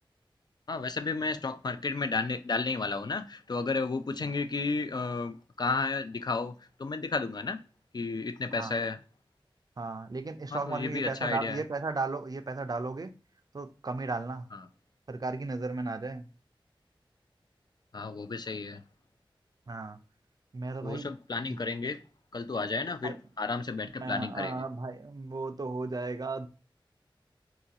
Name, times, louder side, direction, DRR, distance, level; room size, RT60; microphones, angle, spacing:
voice 1, 0.7-7.6 7.9-9.0 10.5-11.6 14.5-14.6 17.9-18.8 20.8-22.0 22.3-24.6, left 4 dB, 50° left, 0.3 m, -32 dB
voice 2, 9.8-13.1 13.5-14.5 15.1-16.3 19.7-20.0 20.5-21.1 21.5-21.6 23.0-23.2 24.0-26.5, right 3 dB, 45° right, 0.4 m, -35 dB
3.7 x 2.4 x 2.7 m
wide cardioid pair, 70°, 9 cm